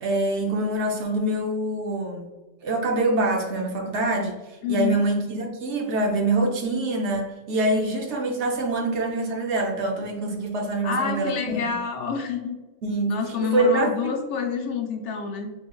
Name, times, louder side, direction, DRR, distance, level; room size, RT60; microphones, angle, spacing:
voice 1, 0.0-2.3 2.6-4.4 4.7-11.6 12.8-13.9, right 2 dB, 70° right, 2 dB, 0.9 m, -25 dB
voice 2, 4.6-5.0 10.8-12.5 13.1-15.5, left 6 dB, 70° left, 3 dB, 0.9 m, -28 dB
3.6 x 3.2 x 2.2 m, 1.2 s
omnidirectional pair, 1.3 m